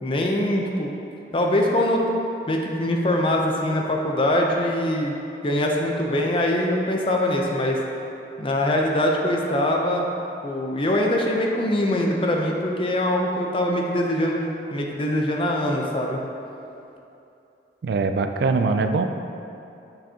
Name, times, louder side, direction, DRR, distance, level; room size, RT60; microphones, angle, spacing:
voice 1, 0.0-0.9 1.3-2.0 2.5-5.2 5.4-7.8 8.4-10.1 10.4-16.2, left 1 dB, 30° left, 0 dB, 0.6 m, -23 dB
voice 2, 17.8-19.1, right 4 dB, 65° right, 7 dB, 0.3 m, -22 dB
7.0 x 5.8 x 2.8 m, 2.7 s
head